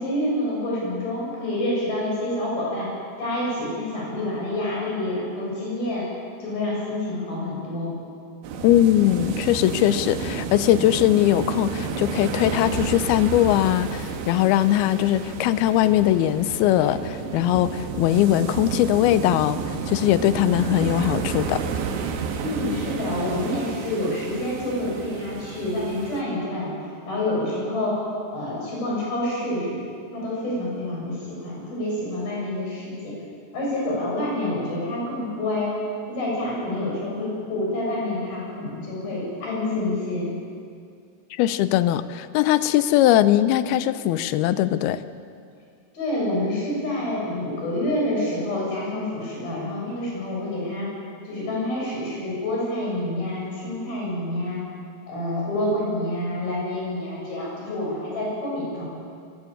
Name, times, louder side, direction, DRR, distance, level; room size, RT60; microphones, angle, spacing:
voice 1, 0.0-2.9 3.2-6.1 6.4-7.9 22.4-26.7 27.1-28.0 28.3-33.2 33.5-35.8 36.1-40.3 45.9-50.9 51.2-54.6 55.1-58.8, left 1 dB, 55° left, -4 dB, 9.0 m, -27 dB
sound 1, 8.4-26.2, right 5 dB, 75° right, 3.8 m, -31 dB
voice 2, 8.6-19.6 19.9-21.6 41.3-45.0, left 13 dB, 80° left, 13 dB, 2.3 m, -20 dB
22.5 x 18.0 x 9.0 m, 2.3 s
omnidirectional pair, 5.2 m